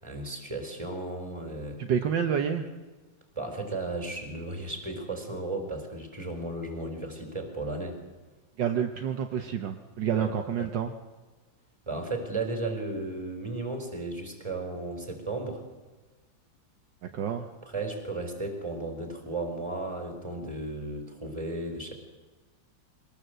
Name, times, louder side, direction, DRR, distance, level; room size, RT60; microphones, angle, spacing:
voice 1, 0.0-1.8 3.4-8.0 10.2-10.3 10.6-10.7 11.9-15.6 17.6-21.9, right 2 dB, 15° right, 4 dB, 4.1 m, -34 dB
voice 2, 1.8-2.7 8.6-10.9 17.1-17.5, right 8 dB, 70° right, 5 dB, 1.6 m, -28 dB
22.5 x 19.0 x 7.9 m, 1.3 s
omnidirectional pair, 2.1 m